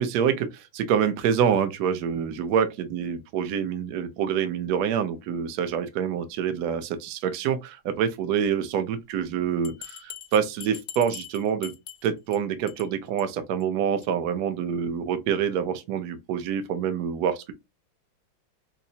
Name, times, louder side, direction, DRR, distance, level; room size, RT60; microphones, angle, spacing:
voice 1, 0.0-11.7 12.0-17.5, right 8 dB, 70° right, 0.9 m, -26 dB
Bell, 9.6-12.4 12.7-12.9 13.2-13.3 13.6-13.7 14.0-14.1, left 9 dB, 65° left, 0.8 m, -42 dB
5.4 x 2.0 x 2.7 m
omnidirectional pair, 2.2 m